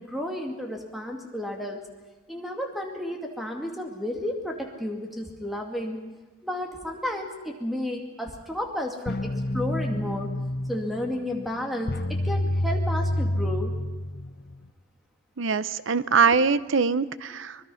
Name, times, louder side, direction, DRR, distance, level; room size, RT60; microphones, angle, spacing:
voice 1, 0.0-1.8 2.3-6.0 6.4-10.3 10.7-13.7 16.3-16.4, left 1 dB, ahead, 2 dB, 2.3 m, -32 dB
sound 1, 9.1-14.7, left 1 dB, 50° left, 0.9 m, -28 dB
voice 2, 15.4-17.6, right 5 dB, 65° right, 15 dB, 0.7 m, -23 dB
24.5 x 20.5 x 5.7 m, 1.2 s
head